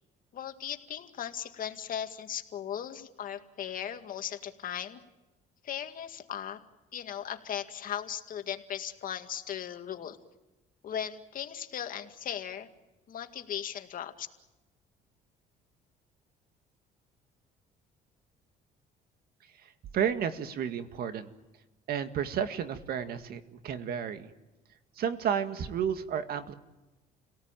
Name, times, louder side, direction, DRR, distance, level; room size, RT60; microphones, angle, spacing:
voice 1, 0.3-5.0 5.6-6.6 6.9-10.2 10.8-12.7 13.1-14.3, left 9 dB, 55° left, 7 dB, 2.1 m, -37 dB
voice 2, 19.6-21.3 21.9-24.3 25.0-26.5, right 8 dB, 65° right, 9 dB, 2.0 m, -32 dB
29.0 x 18.0 x 9.1 m, 1.1 s
cardioid pair, 110°, 17 cm